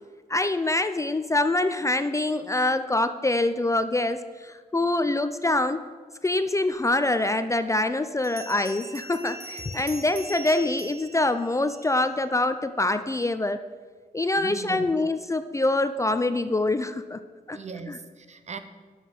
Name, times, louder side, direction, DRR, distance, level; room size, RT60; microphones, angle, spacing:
voice 1, 0.3-5.8 6.2-13.6 14.1-17.2 17.5-17.6 17.9-18.0, left 2 dB, 20° left, 10 dB, 0.4 m, -25 dB
Bell, 7.0-7.1 8.2-12.1, right 2 dB, 80° right, 1.3 m, -42 dB
voice 2, 14.4-14.9 17.5-18.6, right 5 dB, 45° right, 10 dB, 0.8 m, -38 dB
10.5 x 7.2 x 5.4 m, 1.5 s
wide cardioid pair, 105°, 16 cm